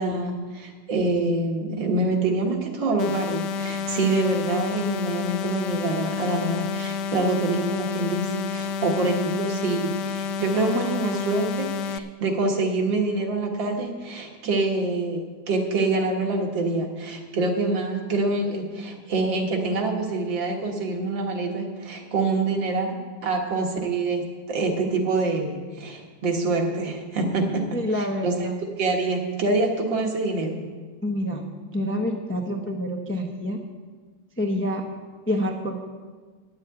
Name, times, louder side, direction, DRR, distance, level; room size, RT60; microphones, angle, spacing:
voice 1, 0.0-27.6 27.9-28.5 28.8-30.6, right 3 dB, 75° right, 1 dB, 2.2 m, -26 dB
sound 1, 3.0-12.0, left 6 dB, 75° left, 1.1 m, -30 dB
voice 2, 27.7-28.5 31.0-31.4 31.7-33.6 34.4-34.8 35.3-35.7, left 1 dB, 15° left, 1 dB, 0.5 m, -27 dB
10.5 x 7.5 x 8.6 m, 1.5 s
omnidirectional pair, 2.1 m